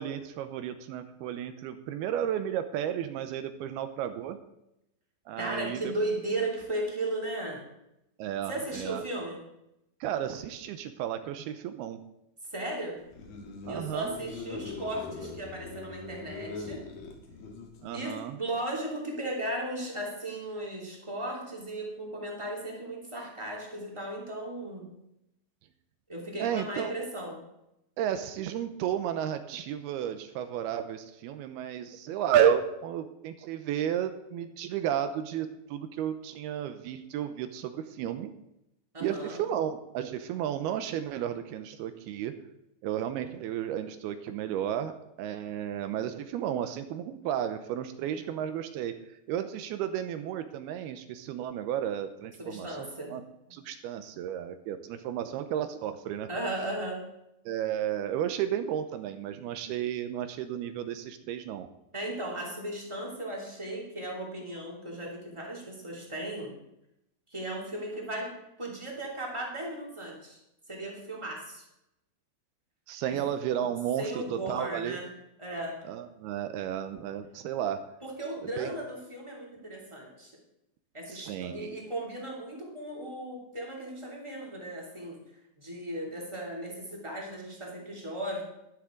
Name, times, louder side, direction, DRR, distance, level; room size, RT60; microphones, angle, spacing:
voice 1, 0.0-4.4 5.3-5.9 8.2-9.0 10.0-12.0 13.7-14.2 17.8-18.4 26.4-26.9 28.0-38.3 39.0-42.3 42.8-44.9 45.2-48.9 49.3-53.2 53.5-56.3 57.5-61.7 72.9-75.0 75.8-77.8 78.4-78.7 81.1-81.7, right 10 dB, 85° right, 9 dB, 2.8 m, -32 dB
voice 2, 5.4-7.6 8.5-9.4 12.5-13.0 13.7-16.8 17.9-24.9 26.1-27.4 38.9-39.4 52.4-53.1 53.5-53.6 56.3-57.0 61.9-66.5 67.3-70.4 70.7-71.7 73.1-73.2 74.0-75.1 75.4-75.8 78.0-80.3 80.9-85.2 85.6-88.4, right 1 dB, 10° right, -2 dB, 2.2 m, -36 dB
sound 1, 13.0-18.1, left 3 dB, 70° left, 3.3 m, -42 dB
13.0 x 11.5 x 3.8 m, 0.85 s
omnidirectional pair, 4.5 m